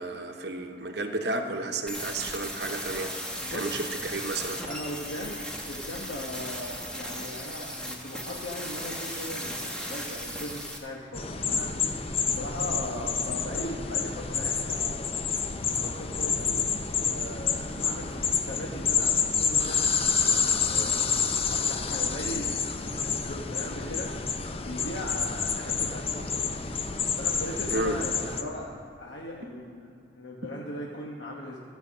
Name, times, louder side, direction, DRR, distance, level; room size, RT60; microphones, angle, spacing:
voice 1, 0.0-3.1 3.5-4.6 27.7-28.0 29.4-29.5, right 2 dB, 60° right, 4 dB, 0.9 m, -32 dB
sound 1, 1.9-10.8, equal, 5° left, 1.2 m, -36 dB
voice 2, 3.4-3.8 4.6-11.8 12.2-15.2 15.7-19.8 20.2-21.0 21.5-24.1 24.6-26.6 27.2-31.6, left 1 dB, 80° left, -2 dB, 1.1 m, -39 dB
sound 2, 11.1-28.4, left 6 dB, 30° left, 0.6 m, -28 dB
14.0 x 5.7 x 7.3 m, 2.6 s
head